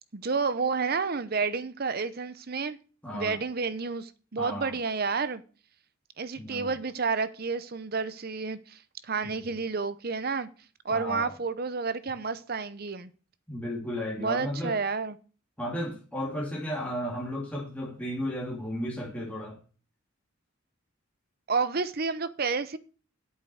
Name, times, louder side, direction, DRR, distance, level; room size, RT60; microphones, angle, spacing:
voice 1, 0.1-2.8 3.1-5.4 6.2-10.5 10.8-13.1 14.2-15.2 21.5-22.8, right 4 dB, 50° right, 0.8 m, -30 dB
voice 2, 3.0-3.4 4.4-4.7 6.4-6.7 10.9-11.3 13.5-14.7 15.6-19.6, equal, 5° left, 2.5 m, -34 dB
8.3 x 7.8 x 6.3 m
head